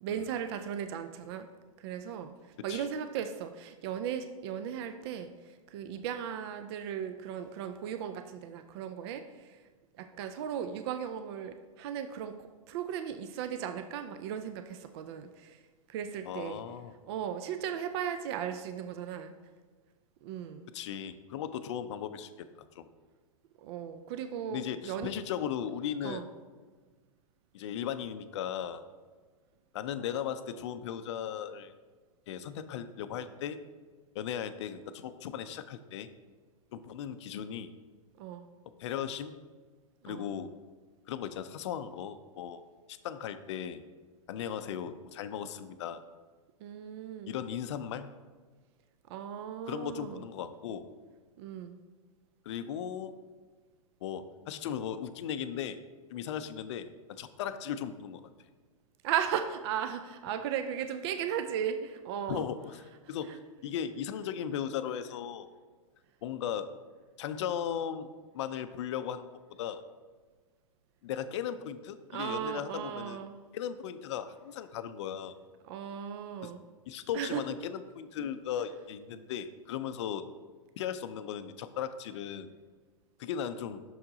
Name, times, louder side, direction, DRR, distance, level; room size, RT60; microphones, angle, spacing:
voice 1, 0.0-1.5 1.8-2.3 2.6-9.6 10.0-12.3 12.7-15.6 15.9-16.6 17.1-19.3 20.2-20.7 23.6-25.1 26.0-26.3 38.2-38.5 40.1-40.3 46.6-47.3 49.1-50.2 51.4-51.8 59.0-62.4 63.3-63.4 72.1-73.4 75.6-76.6 77.1-77.4, right 9 dB, 45° right, 8 dB, 0.4 m, -36 dB
voice 2, 16.2-16.9 20.7-22.5 22.8-22.9 24.5-26.2 27.5-28.8 29.7-31.7 32.3-33.6 34.1-36.1 36.7-37.7 38.8-39.4 40.0-40.5 41.1-42.6 42.9-43.8 44.3-46.0 47.3-48.1 49.6-50.9 52.5-53.2 54.0-55.8 56.1-58.2 62.3-65.5 66.2-66.7 67.2-68.1 68.3-69.3 69.6-69.8 71.0-73.2 73.5-75.4 76.4-76.5 76.9-80.2 80.8-82.5 83.2-83.8, left 9 dB, 55° left, 11 dB, 0.4 m, -37 dB
6.3 x 4.5 x 3.8 m, 1.4 s
hypercardioid pair, 110°, 18 cm